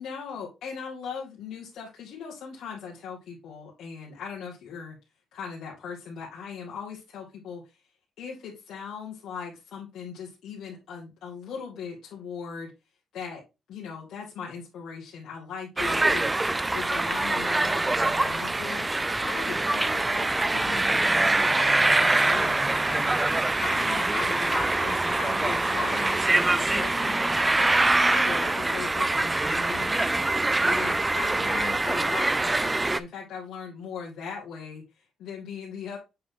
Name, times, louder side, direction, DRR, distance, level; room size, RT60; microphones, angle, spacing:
voice 1, 0.0-5.0 5.3-7.8 8.2-12.7 13.1-13.4 13.7-16.3 16.7-27.2 27.6-36.0, left 6 dB, 70° left, -4 dB, 2.0 m, -39 dB
sound 1, 15.8-33.0, right 2 dB, 15° right, 0.4 m, -24 dB
7.7 x 4.0 x 3.7 m, 0.25 s
cardioid pair, 90°, 0 cm